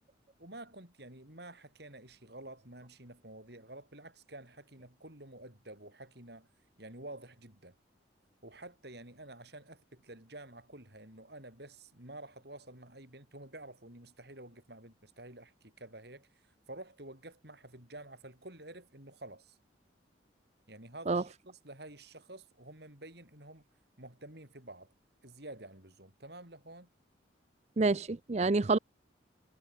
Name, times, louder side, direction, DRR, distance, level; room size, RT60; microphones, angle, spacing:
voice 1, 0.4-6.5 6.8-7.8 8.4-19.6 20.7-23.6 24.0-24.9 25.2-26.9, right 1 dB, 55° right, 6.6 m, -50 dB
voice 2, 27.8-28.8, right 3 dB, 35° right, 0.5 m, -27 dB
head